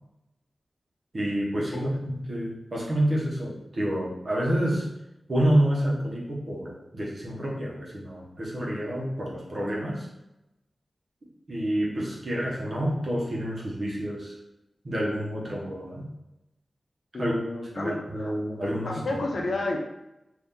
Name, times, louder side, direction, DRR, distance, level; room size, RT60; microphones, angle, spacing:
voice 1, 1.1-4.9 5.3-10.1 11.5-14.3 14.8-16.1 17.2-17.4 17.7-19.2, right 1 dB, 55° right, -4 dB, 1.1 m, -28 dB
voice 2, 17.1-18.3 18.8-19.8, left 2 dB, 70° left, 1 dB, 0.6 m, -31 dB
2.8 x 2.7 x 3.7 m, 0.91 s
cardioid pair, 60°, 0 cm